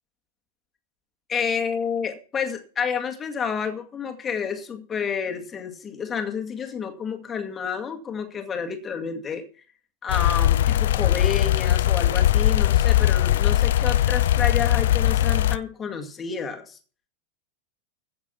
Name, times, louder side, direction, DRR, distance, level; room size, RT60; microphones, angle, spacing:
voice 1, 1.3-9.4 10.0-16.8, left 6 dB, 20° left, 4 dB, 2.1 m, -30 dB
sound 1, 10.1-15.6, left 12 dB, 60° left, 0.5 m, -20 dB
15.5 x 6.8 x 5.8 m, 0.40 s
figure-of-eight pair, 90°, 0 cm